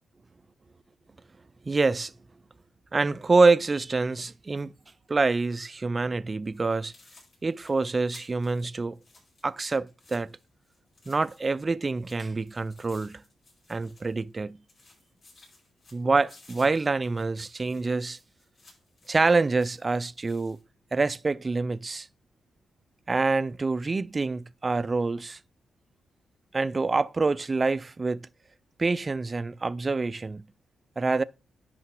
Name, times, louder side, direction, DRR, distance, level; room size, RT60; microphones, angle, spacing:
voice 1, 1.7-2.1 2.9-4.7 5.1-6.9 7.4-9.0 9.4-10.3 11.1-13.2 13.7-14.6 15.9-18.2 19.1-20.6 20.9-22.1 23.1-25.4 26.5-28.3 28.8-30.4 31.0-31.2, right 3 dB, 25° right, 0.3 m, -26 dB
sound 1, 6.4-6.6 6.9-11.7 11.9-14.4 14.7-20.6, left 3 dB, 40° left, 4.9 m, -58 dB
10.0 x 3.8 x 4.7 m
cardioid pair, 135°, 0 cm